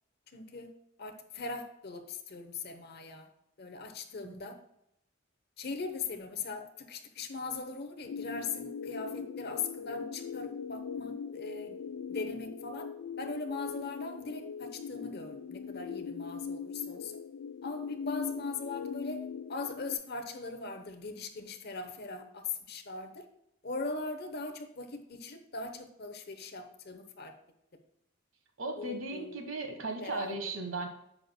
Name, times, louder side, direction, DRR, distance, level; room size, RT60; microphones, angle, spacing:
voice 1, 0.3-0.7 1.0-3.3 3.6-4.6 5.6-11.8 12.1-12.9 13.2-17.2 17.6-19.2 19.5-23.3 23.6-27.3 28.8-29.4 30.0-30.5, left 4 dB, 50° left, 7 dB, 0.9 m, -40 dB
sound 1, 8.1-19.9, left 6 dB, 80° left, 0.4 m, -40 dB
voice 2, 28.6-30.9, right 2 dB, 65° right, 4 dB, 1.3 m, -36 dB
10.0 x 7.7 x 2.2 m, 0.80 s
head